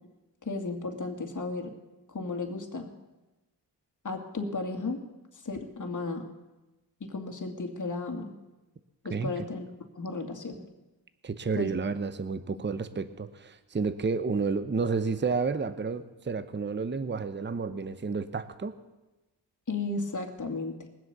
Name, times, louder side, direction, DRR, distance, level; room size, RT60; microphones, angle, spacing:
voice 1, 0.4-1.7 2.1-2.9 4.0-5.1 5.3-6.3 7.0-8.3 9.0-9.7 10.0-10.5 11.6-11.7 19.7-20.8, left 3 dB, 45° left, 4 dB, 2.3 m, -34 dB
voice 2, 9.1-9.4 11.2-18.7, right 4 dB, 25° right, 11 dB, 0.9 m, -31 dB
20.0 x 7.7 x 6.9 m, 1.1 s
cardioid pair, 60°, 43 cm